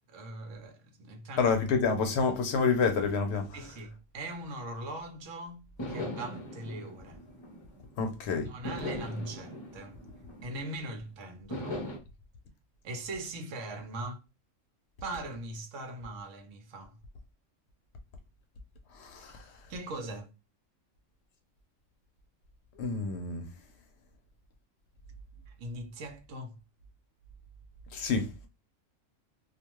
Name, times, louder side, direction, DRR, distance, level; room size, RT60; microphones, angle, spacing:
voice 1, 0.1-1.5 3.5-7.2 8.4-10.0 10.4-11.8 12.8-14.2 15.0-17.0 19.7-20.3 25.5-26.6, right 2 dB, 75° right, 1.0 m, -40 dB
voice 2, 1.4-3.6 8.0-8.5 19.0-19.4 22.8-23.4 27.9-28.5, left 5 dB, 65° left, 0.8 m, -28 dB
sound 1, 5.8-8.1 8.6-10.9 11.5-12.0, left 1 dB, 30° left, 0.5 m, -39 dB
2.4 x 2.2 x 2.9 m
omnidirectional pair, 1.3 m